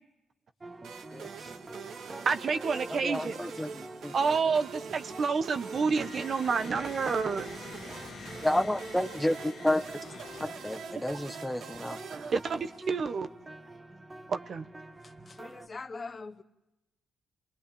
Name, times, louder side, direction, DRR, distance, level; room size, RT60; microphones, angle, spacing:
sound 1, 0.6-15.7, right 2 dB, 20° right, 1.6 m, -48 dB
sound 2, 0.8-13.0, right 6 dB, 70° right, 2.2 m, -45 dB
voice 1, 1.1-1.5 2.9-4.6 8.4-9.8 10.4-12.0, left 1 dB, 5° left, 1.3 m, -31 dB
voice 2, 2.0-3.4 4.1-7.5 12.1-13.3 14.3-14.6, right 5 dB, 50° right, 1.3 m, -29 dB
sound 3, 5.6-11.3, left 5 dB, 55° left, 2.0 m, -47 dB
voice 3, 15.0-16.4, left 4 dB, 30° left, 1.1 m, -42 dB
29.0 x 21.5 x 8.6 m
cardioid pair, 90°, 0 cm